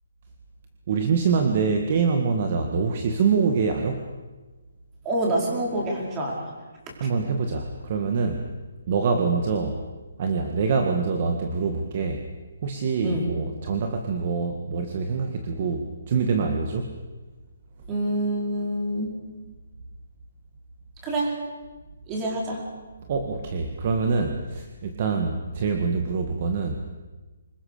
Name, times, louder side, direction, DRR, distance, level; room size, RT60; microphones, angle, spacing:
voice 1, 0.9-4.1 7.0-8.4 8.9-9.8 10.2-12.2 12.6-16.9 23.1-26.8, right 5 dB, 40° right, 5 dB, 1.9 m, -25 dB
voice 2, 5.0-6.5 6.9-7.1 13.0-13.3 17.9-19.1 21.0-21.4 22.1-22.6, right 1 dB, 15° right, -1 dB, 5.1 m, -27 dB
26.0 x 21.5 x 6.8 m, 1.2 s
hypercardioid pair, 165°, 0 cm